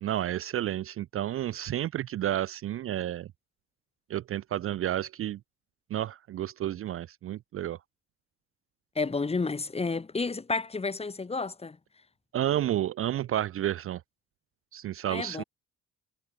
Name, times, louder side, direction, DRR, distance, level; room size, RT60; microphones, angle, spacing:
voice 1, 0.0-3.3 4.1-5.4 5.9-7.8 12.3-14.0 14.7-15.4, right 12 dB, 50° right, 0.4 m, -31 dB
voice 2, 8.9-11.8 15.1-15.4, left 4 dB, 20° left, 1.1 m, -31 dB
cardioid pair, 90°, 30 cm